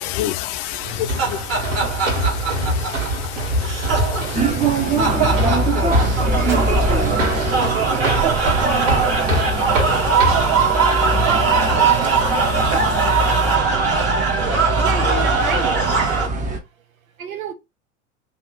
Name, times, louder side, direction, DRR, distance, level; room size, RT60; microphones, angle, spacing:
voice 1, 0.0-10.4 10.7-13.5, left 12 dB, 50° left, 0.6 m, -33 dB
sound 1, 0.8-16.3, right 5 dB, 35° right, 1.5 m, -21 dB
sound 2, 0.8-10.6, equal, 70° right, 1.7 m, -25 dB
sound 3, 4.3-16.6, right 2 dB, 20° right, 0.8 m, -23 dB
voice 2, 14.8-15.9 17.2-17.5, right 7 dB, 85° right, 0.7 m, -29 dB
2.9 x 2.4 x 4.0 m
hypercardioid pair, 85°, 40 cm